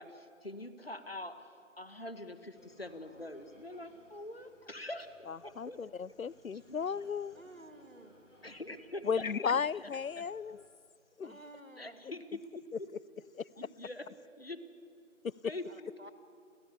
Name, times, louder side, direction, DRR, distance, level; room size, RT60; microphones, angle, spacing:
voice 1, 0.0-5.1 5.4-5.8 6.7-6.8 8.4-9.5 10.2-10.3 11.8-12.6 13.6-14.1 14.4-14.6 15.4-16.1, left 1 dB, 45° left, 11 dB, 1.6 m, -44 dB
sound 1, 2.5-10.7, equal, 65° left, 3.6 m, -63 dB
voice 2, 5.3-7.4 9.0-10.6 11.2-11.3 12.0-12.1 13.3-13.7 15.2-15.3, left 6 dB, 90° left, 24 dB, 0.6 m, -35 dB
voice 3, 7.3-8.2 11.2-12.0 15.6-16.1, right 1 dB, 80° right, 6 dB, 2.7 m, -53 dB
29.5 x 12.0 x 8.4 m, 2.4 s
figure-of-eight pair, 170°, 40 cm